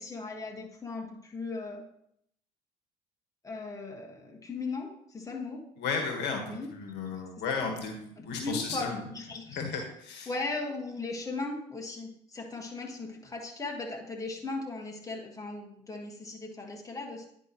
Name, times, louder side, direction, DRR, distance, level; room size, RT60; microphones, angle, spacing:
voice 1, 0.0-1.8 3.4-5.6 6.5-6.7 7.3-7.4 8.3-9.6 10.3-17.2, left 3 dB, 15° left, 0 dB, 1.5 m, -37 dB
voice 2, 5.8-9.0 9.5-10.3, left 4 dB, 60° left, 3 dB, 1.4 m, -34 dB
9.8 x 4.6 x 3.0 m, 0.73 s
hypercardioid pair, 60°, 20 cm